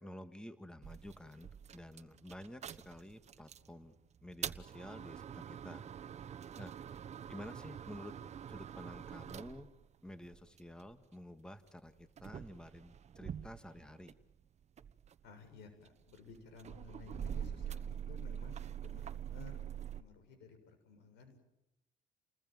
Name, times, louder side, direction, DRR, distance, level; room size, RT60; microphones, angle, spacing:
voice 1, 0.0-3.9 4.2-5.8 6.6-6.7 7.3-8.1 8.5-9.7 10.0-14.1, left 1 dB, 5° left, 10 dB, 1.7 m, -50 dB
sound 1, 0.8-3.7 4.2-10.9 11.7-14.3 14.6-20.0, right 9 dB, 40° right, 1.1 m, -45 dB
voice 2, 15.2-21.4, left 5 dB, 80° left, 7 dB, 7.4 m, -56 dB
30.0 x 20.5 x 9.4 m, 0.89 s
cardioid pair, 110°, 17 cm